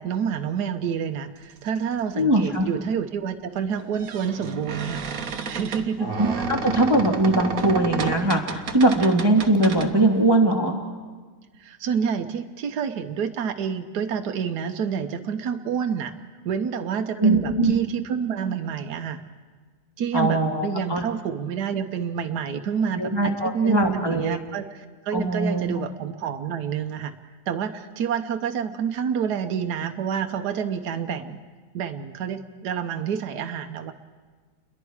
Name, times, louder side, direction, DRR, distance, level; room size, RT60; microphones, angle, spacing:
voice 1, 0.0-5.0 5.5-6.1 11.6-16.1 16.4-19.2 20.0-27.1 27.5-31.4 31.7-33.9, right 7 dB, 80° right, 6 dB, 1.5 m, -28 dB
voice 2, 2.1-2.7 6.0-10.8 17.2-17.7 20.1-21.0 22.9-24.4 25.1-25.7, right 1 dB, 15° right, 2 dB, 1.5 m, -21 dB
sound 1, 2.1-2.2 3.8-9.9, right 5 dB, 60° right, 1.5 m, -31 dB
29.0 x 22.0 x 4.7 m, 1.4 s
omnidirectional pair, 1.7 m